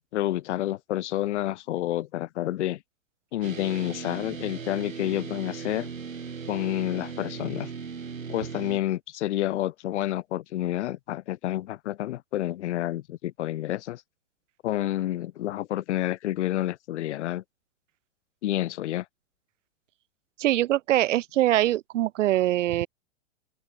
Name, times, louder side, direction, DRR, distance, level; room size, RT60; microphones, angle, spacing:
voice 1, 0.0-2.8 3.3-5.9 6.5-7.7 8.3-14.0 14.6-17.4 18.4-19.0, left 14 dB, 60° left, 1.0 m, -29 dB
sound 1, 3.4-8.8, right 6 dB, 90° right, 2.8 m, -38 dB
voice 2, 20.4-22.9, right 14 dB, 70° right, 0.5 m, -23 dB
open air
hypercardioid pair, 115°, 39 cm